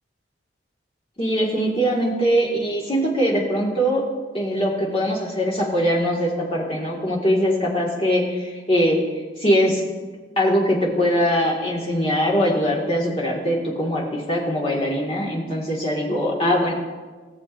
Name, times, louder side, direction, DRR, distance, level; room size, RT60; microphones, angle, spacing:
voice 1, 1.2-4.0 4.3-9.0 9.4-9.8 10.4-16.7, equal, 30° left, -3 dB, 1.7 m, -22 dB
18.5 x 6.8 x 2.5 m, 1.4 s
head